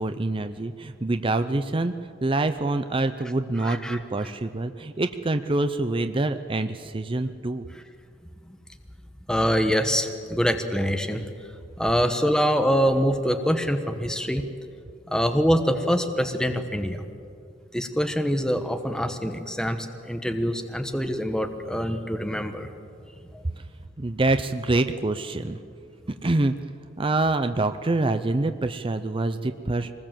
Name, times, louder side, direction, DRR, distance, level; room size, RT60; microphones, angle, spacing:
voice 1, 0.0-1.9 2.2-7.6 24.0-25.6 26.2-26.6 27.0-29.9, right 2 dB, 30° right, 9 dB, 0.6 m, -25 dB
voice 2, 3.6-4.0 9.3-11.2 11.8-14.5 15.1-17.0 17.7-22.7 23.3-23.4, equal, 5° left, 6 dB, 1.1 m, -24 dB
25.0 x 20.0 x 7.6 m, 2.4 s
head